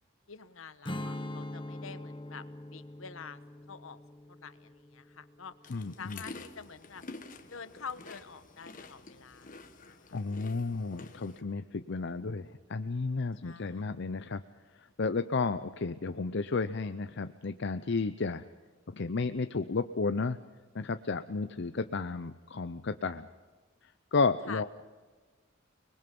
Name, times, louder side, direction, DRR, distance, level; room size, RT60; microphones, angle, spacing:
voice 1, 0.3-2.5 2.7-3.4 3.7-4.0 4.3-5.5 6.0-7.0 7.5-10.2 13.4-13.9 24.5-24.6, left 6 dB, 80° left, 12 dB, 1.2 m, -47 dB
Strum, 0.8-6.2, left 1 dB, 25° left, 1.2 m, -43 dB
sound 1, 5.6-11.4, left 3 dB, 40° left, 1.6 m, -49 dB
voice 2, 5.7-6.2 10.1-14.4 15.0-18.4 18.9-20.4 20.7-23.3 24.1-24.6, left 4 dB, 60° left, 10 dB, 0.6 m, -32 dB
30.0 x 21.0 x 5.4 m, 1.4 s
head